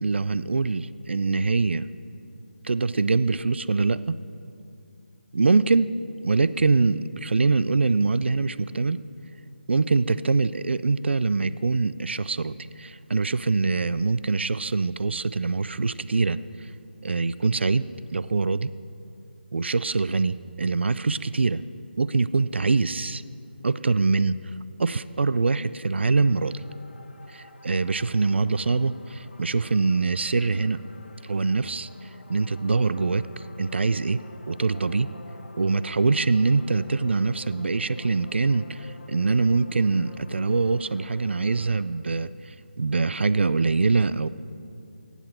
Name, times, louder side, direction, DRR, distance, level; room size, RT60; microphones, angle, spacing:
voice 1, 0.0-1.9 2.6-4.2 5.3-5.9 6.2-9.0 9.7-16.7 17.0-17.9 18.1-18.7 19.5-21.6 22.0-23.2 23.6-24.3 24.8-26.5 27.3-30.8 31.2-31.9 32.3-33.3 33.6-35.1 35.6-44.3, right 4 dB, 75° right, 16 dB, 0.3 m, -24 dB
sound 1, 26.2-41.8, left 2 dB, 75° left, 0.9 m, -49 dB
15.0 x 8.2 x 4.4 m, 2.6 s
figure-of-eight pair, 160°, 6 cm